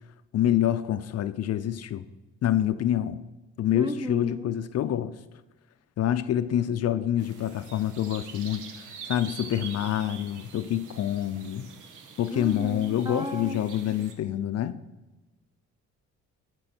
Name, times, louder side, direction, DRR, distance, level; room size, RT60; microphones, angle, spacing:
voice 1, 0.3-2.0 2.4-3.2 3.6-5.1 6.0-11.7 12.2-14.8, left 11 dB, 55° left, 12 dB, 0.5 m, -27 dB
voice 2, 3.7-4.5 12.3-13.6 13.9-14.0, left 1 dB, 15° right, 9 dB, 0.9 m, -35 dB
sound 1, 7.2-14.1, right 5 dB, 80° right, 1.2 m, -45 dB
12.5 x 6.1 x 4.4 m, 1.1 s
cardioid pair, 90°, 30 cm